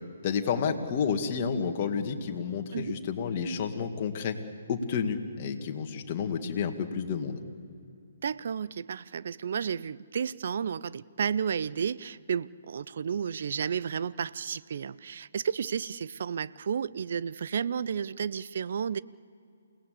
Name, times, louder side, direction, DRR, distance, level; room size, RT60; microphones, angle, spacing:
voice 1, 0.2-4.4 4.7-7.4, left 6 dB, 40° left, 5 dB, 2.0 m, -30 dB
voice 2, 8.2-19.0, right 7 dB, 55° right, 18 dB, 0.6 m, -32 dB
28.5 x 18.0 x 8.4 m, 2.7 s
figure-of-eight pair, 135°, 0 cm